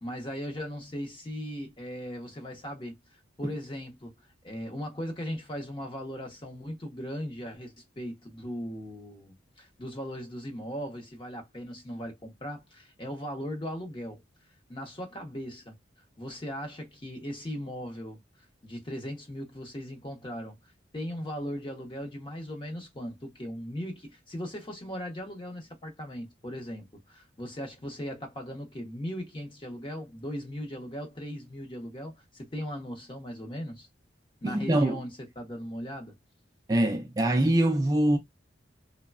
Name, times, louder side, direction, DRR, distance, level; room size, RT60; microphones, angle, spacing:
voice 1, 0.0-3.0 3.4-14.2 14.7-15.8 16.2-18.2 18.6-20.6 20.9-33.9 34.4-36.1, equal, 25° left, 0.8 m, -38 dB
voice 2, 34.4-34.9 36.7-38.2, right 1 dB, 20° right, 0.3 m, -23 dB
3.1 x 2.2 x 2.2 m
head